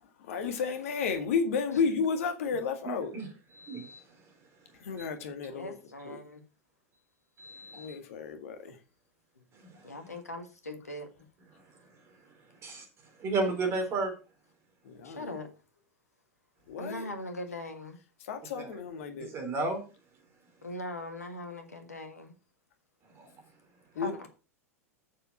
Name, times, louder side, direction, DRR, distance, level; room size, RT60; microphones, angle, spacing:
voice 1, 0.0-3.1 4.8-5.8 6.0-6.2 7.7-8.8 14.8-15.4 16.7-17.1 18.2-19.3 24.0-24.3, left 5 dB, 60° left, 1.8 m, -32 dB
voice 2, 2.8-3.3 3.6-4.0 7.4-8.0 9.9-10.1 12.6-12.8 13.2-14.1 18.6-18.7 19.3-19.8 23.2-23.3, right 3 dB, 30° right, 4.0 m, -32 dB
voice 3, 5.5-6.4 9.8-11.1 13.4-13.5 15.0-15.5 16.8-18.0 20.6-22.3 24.0-24.3, left 1 dB, 80° left, 1.8 m, -40 dB
7.3 x 6.9 x 5.7 m
figure-of-eight pair, 90°, 8 cm